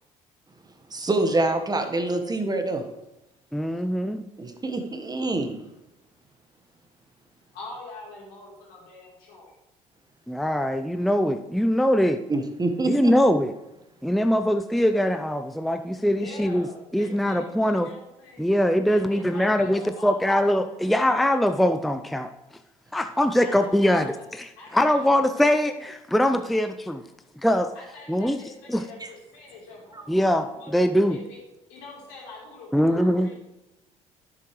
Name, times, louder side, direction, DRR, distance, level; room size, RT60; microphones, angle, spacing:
voice 1, 0.9-2.8 4.4-5.6 12.3-13.1 29.0-29.1 29.9-30.0, right 2 dB, 25° right, 6 dB, 1.2 m, -26 dB
voice 2, 3.5-4.2 10.3-12.2 12.9-13.5 14.0-16.7 16.9-17.9 18.4-22.3 22.9-27.0 27.4-27.7 28.1-28.4 28.7-28.8 30.1-30.5 30.7-31.2 32.7-33.3, equal, ahead, 8 dB, 0.5 m, -22 dB
voice 3, 7.5-9.5 16.2-18.5 18.9-20.3 23.4-24.2 24.6-25.5 27.8-30.8 31.1-31.4 31.7-33.4, left 2 dB, 75° left, -4 dB, 3.5 m, -44 dB
10.0 x 7.8 x 3.1 m, 0.95 s
hypercardioid pair, 55°, 17 cm